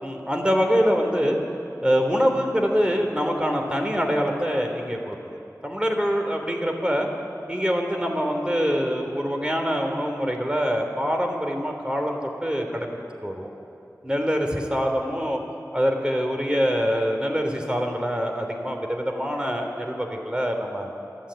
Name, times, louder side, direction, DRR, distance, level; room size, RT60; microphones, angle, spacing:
voice 1, 0.0-1.4 1.8-7.1 7.5-13.0 13.2-13.5 14.0-15.4 15.7-20.9, equal, 15° right, 3 dB, 3.3 m, -24 dB
27.0 x 12.0 x 9.1 m, 2.7 s
wide cardioid pair, 45°, 6 cm